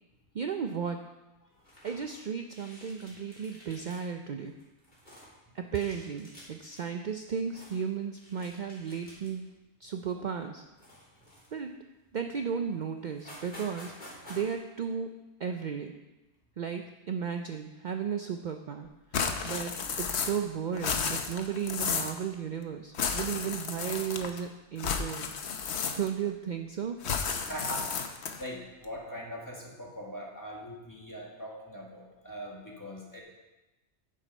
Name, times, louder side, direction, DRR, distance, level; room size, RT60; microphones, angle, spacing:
voice 1, 0.3-1.0 1.8-4.5 5.5-9.5 9.8-10.6 11.5-11.7 12.1-13.9 14.3-15.1 15.4-15.9 16.6-19.7 20.0-25.3 25.9-27.0, right 7 dB, 50° right, 5 dB, 0.6 m, -34 dB
sound 1, 1.6-2.2 2.5-4.0 4.4-5.3 5.7-6.8 7.2-7.9 8.2-9.5 9.9-10.1 10.8-11.7 12.3-12.4 12.7-12.8 13.1-14.5, equal, 45° left, 3.4 m, -51 dB
sound 2, 19.1-20.5 20.7-22.2 22.9-24.4 24.8-26.3 27.0-28.5, left 6 dB, 75° left, 1.1 m, -32 dB
voice 2, 27.3-28.0 28.4-33.2, equal, 15° left, -2 dB, 1.9 m, -41 dB
10.0 x 7.5 x 5.4 m, 1.1 s
omnidirectional pair, 1.1 m